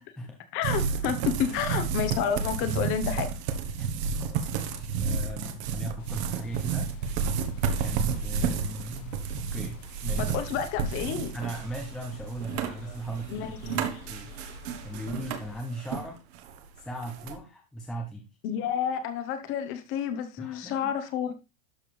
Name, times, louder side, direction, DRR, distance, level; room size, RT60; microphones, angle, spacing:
voice 1, 0.0-0.4 1.4-1.6 3.7-7.3 7.8-10.4 11.3-14.3 14.8-16.2 16.8-18.3 20.4-20.9, right 1 dB, ahead, 0.6 m, -39 dB
voice 2, 0.5-3.3 10.2-11.3 13.3-13.6 18.4-21.3, left 8 dB, 30° left, 1.1 m, -30 dB
sound 1, 0.6-16.1 16.3-17.3, right 6 dB, 55° right, 1.3 m, -31 dB
sound 2, 6.0-15.6, left 1 dB, 65° left, 1.5 m, -46 dB
12.5 x 4.5 x 3.3 m
supercardioid pair, 160°, 40 cm